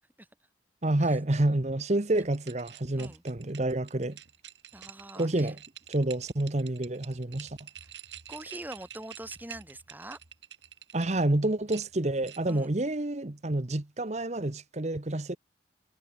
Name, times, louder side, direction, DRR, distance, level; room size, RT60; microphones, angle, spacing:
voice 1, 0.8-4.2 5.2-5.6 5.9-7.6 10.9-15.4, right 1 dB, 40° right, 1.1 m, -28 dB
sound 1, 2.1-11.2 11.7-12.7, right 10 dB, 75° right, 3.0 m, -48 dB
voice 2, 4.7-5.5 8.3-10.2 12.5-12.7, right 1 dB, 10° right, 3.1 m, -43 dB
head